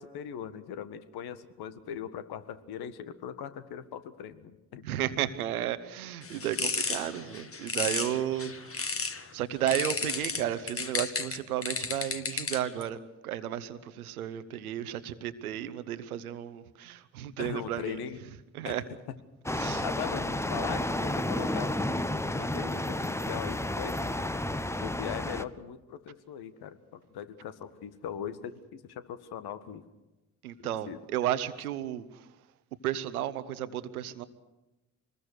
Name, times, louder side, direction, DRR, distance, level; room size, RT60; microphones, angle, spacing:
voice 1, 0.0-4.8 17.4-18.2 18.6-18.8 19.8-21.9 22.3-24.0 24.8-26.8 27.1-29.8 30.6-31.0, left 9 dB, 60° left, 12 dB, 1.7 m, -40 dB
voice 2, 4.8-8.9 9.3-18.0 18.5-18.8 19.5-19.8 30.4-32.3 32.8-34.2, right 11 dB, 80° right, 13 dB, 1.1 m, -33 dB
sound 1, 6.2-9.2 9.7-12.8, left 4 dB, 30° left, 2.1 m, -33 dB
sound 2, 19.5-25.4, left 1 dB, 5° left, 1.0 m, -31 dB
26.5 x 20.5 x 6.5 m, 1.0 s
figure-of-eight pair, 45°, 43 cm